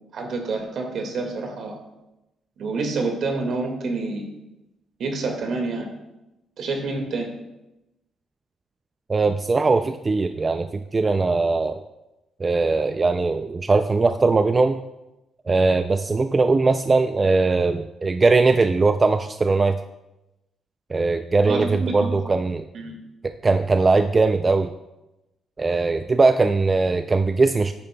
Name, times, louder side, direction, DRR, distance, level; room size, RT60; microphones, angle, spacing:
voice 1, 0.1-1.8 2.6-4.3 5.0-5.9 6.6-7.3 21.5-22.1 22.7-23.0, right 3 dB, 65° right, 3 dB, 1.9 m, -28 dB
voice 2, 9.1-11.8 12.4-14.8 15.5-19.8 20.9-22.6 23.2-24.7 25.6-27.7, right 3 dB, 30° right, 8 dB, 0.4 m, -20 dB
10.5 x 9.3 x 2.3 m, 0.96 s
cardioid pair, 90°, 0 cm